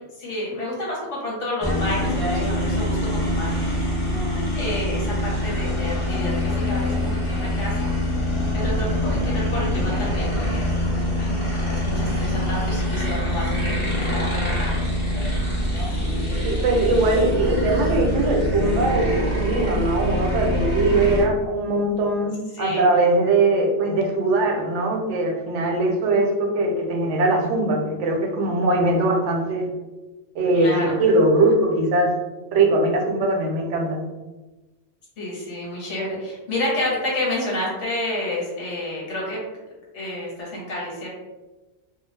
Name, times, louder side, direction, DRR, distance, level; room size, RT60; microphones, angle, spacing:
voice 1, 0.2-3.9 4.5-7.9 8.5-10.8 11.2-14.8 22.5-22.9 30.5-31.0 35.2-39.4 39.9-41.1, left 1 dB, 90° left, -5 dB, 1.4 m, -29 dB
sound 1, 1.6-21.2, left 1 dB, 35° left, 0.6 m, -24 dB
voice 2, 16.4-29.7 30.4-32.1 32.5-34.0, right 2 dB, 85° right, 3 dB, 0.9 m, -21 dB
2.4 x 2.2 x 3.2 m, 1.1 s
omnidirectional pair, 1.2 m